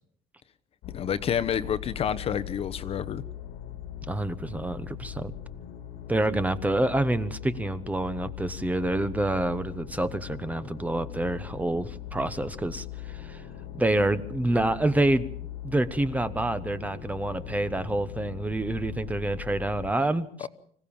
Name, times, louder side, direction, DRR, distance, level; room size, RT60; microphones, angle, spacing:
sound 1, 0.8-19.9, left 10 dB, 80° left, 2.2 m, -40 dB
voice 1, 0.9-3.2 20.4-20.5, left 8 dB, 40° left, 0.9 m, -29 dB
voice 2, 4.1-5.3 6.1-13.4 13.8-15.3 15.6-20.5, right 1 dB, 10° right, 0.9 m, -27 dB
25.5 x 16.0 x 7.2 m
cardioid pair, 140°, 15 cm